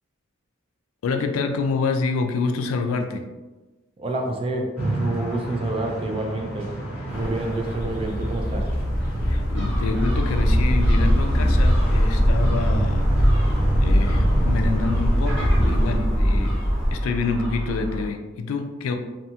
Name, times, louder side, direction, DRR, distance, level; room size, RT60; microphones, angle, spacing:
voice 1, 1.0-3.3 9.3-13.1 13.8-16.6 16.9-19.0, left 4 dB, 85° left, 6 dB, 0.3 m, -27 dB
voice 2, 4.0-6.7 7.1-8.6, right 2 dB, 25° right, 2 dB, 0.3 m, -28 dB
sound 1, 4.7-16.0, right 1 dB, 10° right, 0.8 m, -31 dB
sound 2, 7.1-16.9, equal, 20° left, 0.7 m, -21 dB
Gull seagull, 9.6-18.1, equal, 60° right, 1.0 m, -30 dB
2.7 x 2.2 x 2.7 m, 1.2 s
head